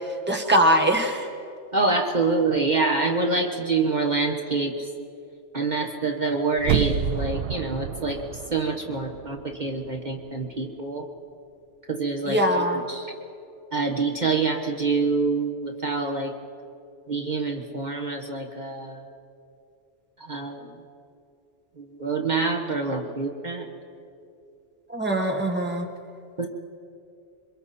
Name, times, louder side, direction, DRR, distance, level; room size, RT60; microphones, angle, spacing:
voice 1, 0.3-1.2 12.2-12.8 24.9-25.9, right 1 dB, 10° right, 2 dB, 1.5 m, -22 dB
voice 2, 1.7-4.9 5.5-8.2 8.5-11.1 11.9-13.1 13.7-16.3 17.1-19.1 20.2-20.7 21.8-23.7 26.4-26.5, right 3 dB, 45° right, 2 dB, 1.4 m, -26 dB
sound 1, 6.6-9.5 9.9-10.0, right 7 dB, 65° right, 0.9 m, -28 dB
27.0 x 24.0 x 4.3 m, 2.5 s
omnidirectional pair, 1.1 m